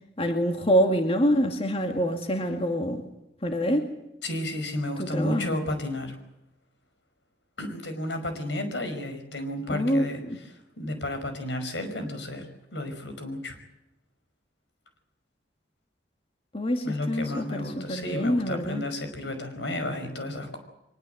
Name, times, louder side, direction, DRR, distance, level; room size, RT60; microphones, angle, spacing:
voice 1, 0.2-3.0 3.4-3.9 5.0-5.6 9.7-10.1 16.5-18.8, equal, 30° left, 5 dB, 2.1 m, -25 dB
voice 2, 4.2-6.2 7.6-10.2 10.5-12.5 12.7-13.6 16.8-20.6, left 1 dB, 85° left, 7 dB, 5.2 m, -32 dB
23.5 x 21.0 x 7.9 m, 0.90 s
head